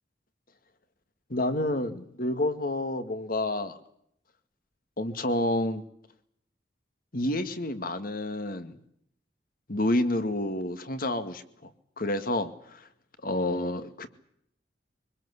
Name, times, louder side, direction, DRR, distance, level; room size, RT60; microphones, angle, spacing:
voice 1, 1.3-3.8 5.0-5.8 7.1-8.8 9.7-11.7 12.0-12.9 13.2-14.1, left 1 dB, 50° left, 10 dB, 2.1 m, -29 dB
24.5 x 20.5 x 8.4 m, 0.71 s
head